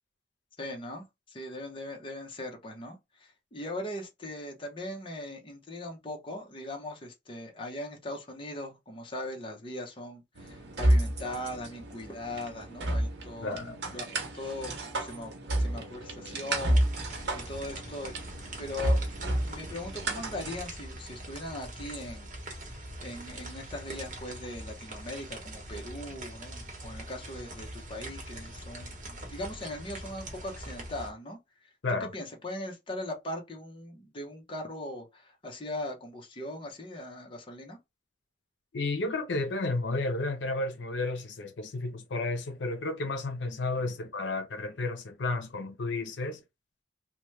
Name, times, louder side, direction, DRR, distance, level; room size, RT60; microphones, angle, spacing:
voice 1, 0.6-14.7 15.0-18.3 18.6-22.3 23.0-31.7 32.0-37.8 43.8-43.9, left 1 dB, 30° left, 0.8 m, -40 dB
sound 1, 10.4-20.6, right 1 dB, 70° right, 0.8 m, -31 dB
voice 2, 13.4-13.9 31.8-32.1 38.7-46.4, left 2 dB, 85° left, 0.6 m, -32 dB
sound 2, 16.5-31.1, right 1 dB, 45° right, 1.0 m, -43 dB
2.9 x 2.2 x 3.1 m
head